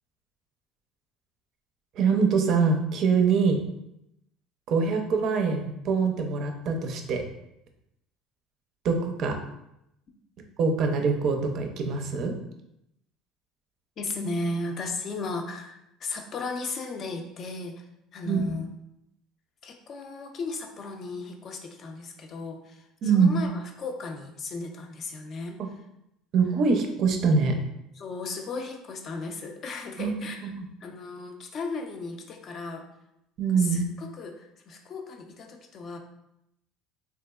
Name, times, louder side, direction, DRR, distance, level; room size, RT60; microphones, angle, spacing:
voice 1, 2.0-3.6 4.7-7.2 8.8-9.4 10.6-12.4 18.3-18.6 23.0-23.4 26.3-27.6 30.0-30.7 33.4-33.9, right 5 dB, 50° right, 4 dB, 0.4 m, -24 dB
voice 2, 14.0-17.9 18.1-18.7 19.6-25.6 27.9-30.5 30.8-32.8 33.6-36.0, left 3 dB, 40° left, 4 dB, 0.4 m, -36 dB
3.4 x 2.9 x 2.3 m, 0.83 s
cardioid pair, 135°, 0 cm